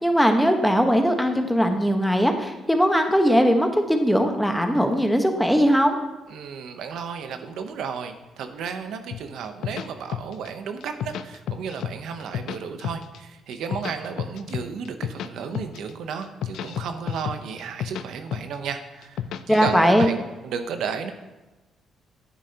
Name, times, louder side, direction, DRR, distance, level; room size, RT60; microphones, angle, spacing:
voice 1, 0.0-6.0 19.5-20.1, equal, ahead, 5 dB, 1.1 m, -20 dB
voice 2, 6.3-21.1, right 6 dB, 80° right, 7 dB, 0.7 m, -33 dB
sound 1, 9.1-10.5 10.8-11.9 12.2-13.2 13.5-15.3 15.5-15.9 16.2-18.0 18.3-18.7 19.0-20.1, left 9 dB, 80° left, 0.4 m, -31 dB
10.0 x 9.0 x 2.8 m, 1.1 s
cardioid pair, 90°, 0 cm